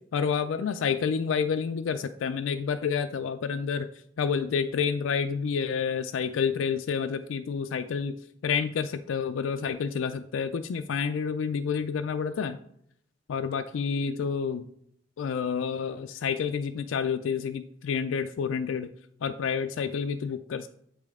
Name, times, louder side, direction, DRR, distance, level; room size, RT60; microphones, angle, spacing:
voice 1, 0.1-8.2 8.4-12.6 13.3-14.7 15.2-18.9 19.2-20.7, left 6 dB, 85° left, 8 dB, 0.4 m, -29 dB
8.2 x 5.1 x 3.6 m, 0.69 s
head